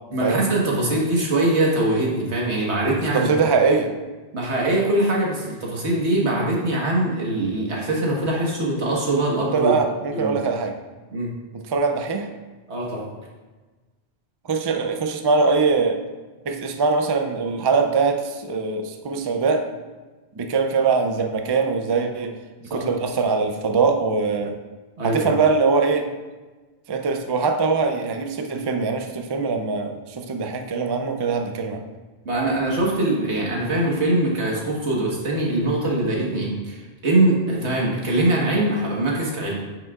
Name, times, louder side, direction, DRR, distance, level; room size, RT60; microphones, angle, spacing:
voice 1, 0.1-3.3 4.3-9.8 10.1-10.4 11.1-11.3 12.7-13.1 22.7-22.9 25.0-25.3 32.3-39.5, right 1 dB, 85° right, -3 dB, 1.7 m, -22 dB
voice 2, 3.1-3.9 9.4-10.7 11.5-12.3 14.5-16.0 16.5-19.6 20.4-22.3 22.7-24.5 25.0-26.1 26.9-31.8, right 4 dB, 40° right, 5 dB, 0.4 m, -22 dB
9.2 x 5.7 x 2.4 m, 1.3 s
omnidirectional pair, 1.1 m